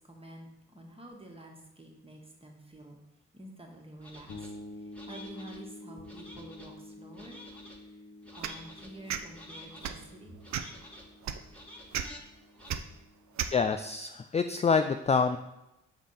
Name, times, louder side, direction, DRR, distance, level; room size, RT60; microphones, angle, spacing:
voice 1, 0.1-3.0 3.3-4.5 4.8-7.4 7.7-7.9 8.3-10.3, right 1 dB, 20° right, 1 dB, 1.6 m, -49 dB
sound 1, 4.0-4.5 4.9-5.6 6.0-6.7 7.1-7.8 8.2-8.9 9.3-9.9 10.4-11.1 11.5-12.2 12.6-12.7, left 1 dB, 5° left, 1.6 m, -50 dB
sound 2, 4.3-13.9, left 2 dB, 75° left, 1.1 m, -49 dB
sound 3, 8.4-8.6 9.1-9.2 9.8-10.0 10.5-10.8 11.2-11.4 11.9-12.0 12.7-12.8 13.4-13.5, right 9 dB, 60° right, 0.6 m, -32 dB
voice 2, 13.5-15.4, left 5 dB, 20° left, 8 dB, 0.4 m, -26 dB
4.9 x 3.6 x 5.7 m, 0.91 s
supercardioid pair, 45°, 31 cm